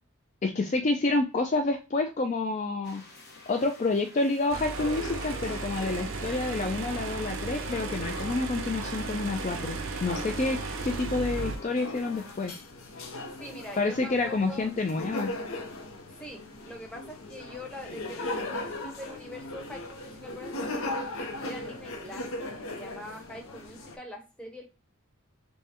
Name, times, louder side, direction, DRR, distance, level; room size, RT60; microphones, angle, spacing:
voice 1, 0.4-3.0 3.5-10.6 10.8-12.5 13.8-15.3, left 3 dB, 35° left, 5 dB, 0.3 m, -28 dB
sound 1, 2.8-12.5, left 2 dB, 50° left, 1.2 m, -47 dB
sound 2, 4.5-11.6, right 4 dB, 60° right, 0.5 m, -35 dB
sound 3, 4.8-24.0, left 2 dB, 70° left, 0.7 m, -39 dB
voice 2, 13.4-14.7 16.1-22.3 22.6-24.7, left 1 dB, 5° left, 0 dB, 0.8 m, -44 dB
5.4 x 2.1 x 2.9 m, 0.31 s
head